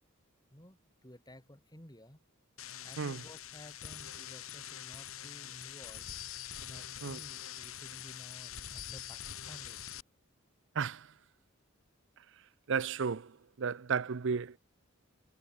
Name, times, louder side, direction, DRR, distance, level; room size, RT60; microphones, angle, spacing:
voice 1, 0.5-2.2 2.8-6.1 6.6-9.9, left 1 dB, 20° left, 5.7 m, -54 dB
sound 1, 2.6-10.0, left 10 dB, 75° left, 4.5 m, -44 dB
voice 2, 12.7-13.3 13.6-14.6, right 5 dB, 60° right, 0.6 m, -33 dB
head